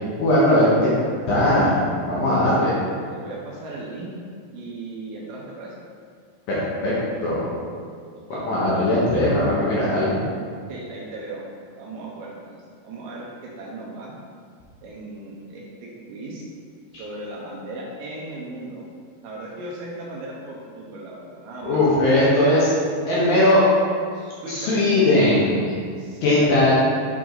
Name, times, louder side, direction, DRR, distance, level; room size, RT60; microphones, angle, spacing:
voice 1, 0.2-0.9 1.3-2.7 6.5-6.9 7.2-7.6 8.3-10.2 16.9-17.0 21.6-22.7 23.1-23.7 24.5-25.9 26.2-26.7, left 1 dB, 65° left, -8 dB, 2.4 m, -19 dB
voice 2, 3.1-4.1 4.5-5.7 8.3-9.1 10.7-11.5 11.7-12.6 12.8-14.1 14.8-16.4 16.9-18.9 19.2-21.8 24.1-25.0 26.0-26.6, right 2 dB, 85° right, -4 dB, 1.9 m, -37 dB
8.0 x 4.7 x 3.9 m, 2.1 s
omnidirectional pair, 5.1 m